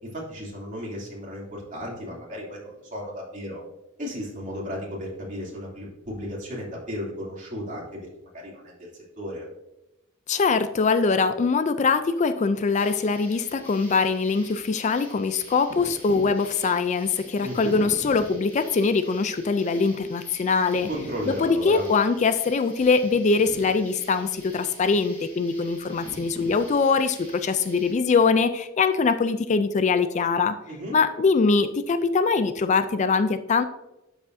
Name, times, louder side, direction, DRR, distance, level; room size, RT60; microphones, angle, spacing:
voice 1, 0.0-3.6 4.0-8.1 8.3-9.5 17.4-17.8 20.9-21.8 30.7-31.0, equal, 40° right, -4 dB, 2.7 m, -34 dB
voice 2, 10.3-20.9 21.3-30.6 30.9-33.6, left 4 dB, 35° left, 11 dB, 0.4 m, -22 dB
sound 1, 12.7-27.9, left 1 dB, 10° left, 2.5 m, -45 dB
12.0 x 4.9 x 2.6 m, 0.92 s
head